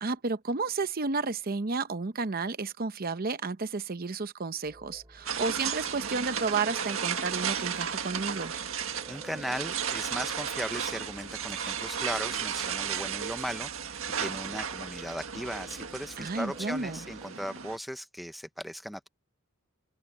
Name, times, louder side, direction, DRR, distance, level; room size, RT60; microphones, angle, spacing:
voice 1, 0.0-8.5 16.2-17.0, right 4 dB, 45° right, 0.8 m, -32 dB
sound 1, 4.6-17.3, right 1 dB, 20° right, 5.0 m, -54 dB
sound 2, 5.2-17.8, right 7 dB, 65° right, 1.8 m, -34 dB
voice 2, 9.1-19.1, equal, ahead, 0.9 m, -37 dB
open air
head